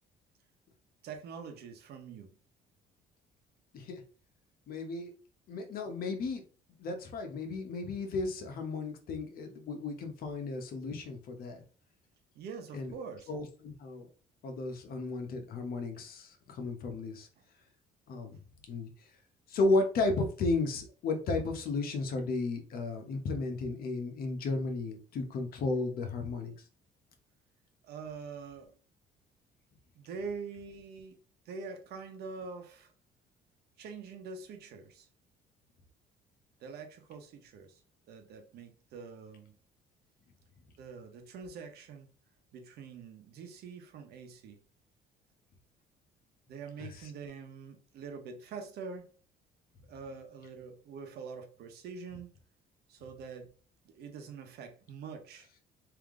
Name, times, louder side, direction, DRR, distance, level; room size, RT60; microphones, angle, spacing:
voice 1, 1.0-2.4 12.3-13.3 17.4-17.5 27.8-28.7 29.9-31.2 31.4-32.9 33.8-35.1 36.6-37.8 38.1-39.5 40.8-42.1 42.5-44.6 46.5-49.1 49.9-52.3 52.9-53.5 53.8-55.5, right 5 dB, 70° right, 1.0 m, -45 dB
voice 2, 4.7-5.1 5.5-6.4 6.8-11.6 12.7-12.9 13.3-14.1 14.4-17.3 18.1-18.4 18.7-18.9 19.5-26.5 46.8-47.1, left 3 dB, 60° left, 1.1 m, -34 dB
3.5 x 2.9 x 3.7 m
cardioid pair, 110°, 17 cm